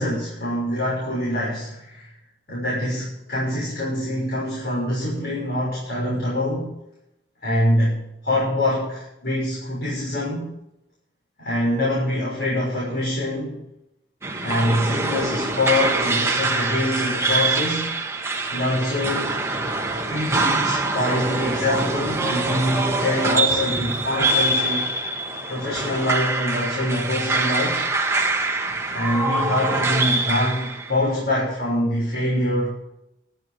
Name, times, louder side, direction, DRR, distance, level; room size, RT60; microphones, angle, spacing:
voice 1, 0.0-2.1 2.5-6.7 7.4-10.5 11.4-13.6 14.4-17.9 18.5-19.3 20.0-24.9 25.5-27.8 28.9-32.8, left 1 dB, 60° left, -6 dB, 6.4 m, -24 dB
sound 1, 14.2-31.0, right 3 dB, 15° right, 1.6 m, -24 dB
12.5 x 12.0 x 6.5 m, 0.84 s
head